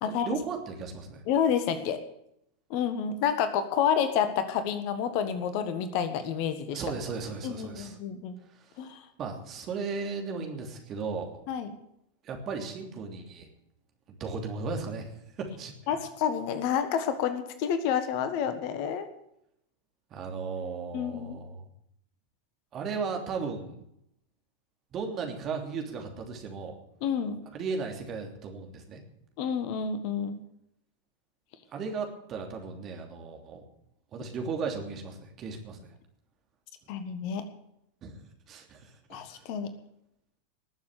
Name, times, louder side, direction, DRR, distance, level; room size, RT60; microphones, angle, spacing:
voice 1, 0.0-1.2 6.7-8.0 8.5-8.7 9.2-11.3 12.2-13.5 14.1-16.0 20.1-21.7 22.7-23.8 24.9-26.8 27.5-29.0 31.7-33.6 34.1-35.9 38.0-38.9 39.3-39.4, right 4 dB, 30° right, 3 dB, 3.0 m, -36 dB
voice 2, 1.3-2.0 2.7-6.8 7.4-8.3 8.8-9.0 11.5-11.7 15.9-19.1 20.9-21.4 27.0-27.4 29.4-30.4 36.9-37.4 39.1-39.7, left 8 dB, 45° left, 10 dB, 1.4 m, -29 dB
19.5 x 7.3 x 8.3 m, 0.76 s
figure-of-eight pair, 90°, 0 cm